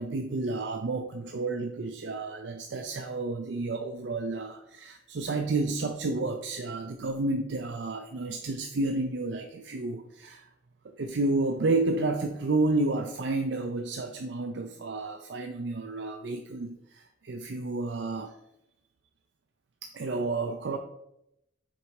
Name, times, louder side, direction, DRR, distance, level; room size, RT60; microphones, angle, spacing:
voice 1, 0.0-10.5 11.0-18.4 19.8-20.8, right 2 dB, 65° right, 5 dB, 0.5 m, -31 dB
6.5 x 4.6 x 4.6 m, 0.83 s
head